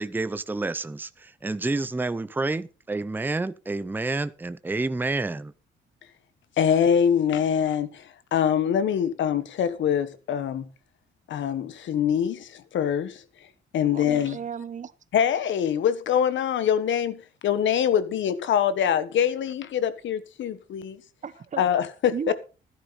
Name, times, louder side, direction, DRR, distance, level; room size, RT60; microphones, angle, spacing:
voice 1, 0.0-5.5, right 3 dB, 10° right, 0.6 m, -29 dB
voice 2, 6.6-10.7 11.3-13.2 13.7-14.4 15.1-21.0 21.6-22.3, left 8 dB, 70° left, 1.4 m, -24 dB
voice 3, 13.8-14.9 21.2-21.6 22.1-22.3, right 7 dB, 40° right, 0.9 m, -34 dB
12.5 x 10.5 x 4.2 m
cardioid pair, 90°, 20 cm